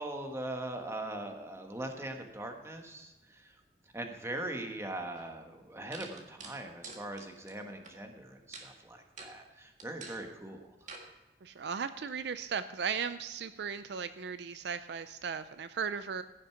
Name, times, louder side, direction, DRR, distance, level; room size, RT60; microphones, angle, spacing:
voice 1, 0.0-3.5 3.9-10.7, right 1 dB, 15° right, 4 dB, 1.3 m, -41 dB
sound 1, 5.2-5.3 5.9-7.9 8.5-8.7 9.2-9.3 9.8-10.2 10.9-11.1, right 4 dB, 45° right, 1.8 m, -47 dB
voice 2, 11.4-16.2, right 6 dB, 65° right, 11 dB, 0.5 m, -36 dB
15.5 x 6.6 x 5.8 m, 1.1 s
head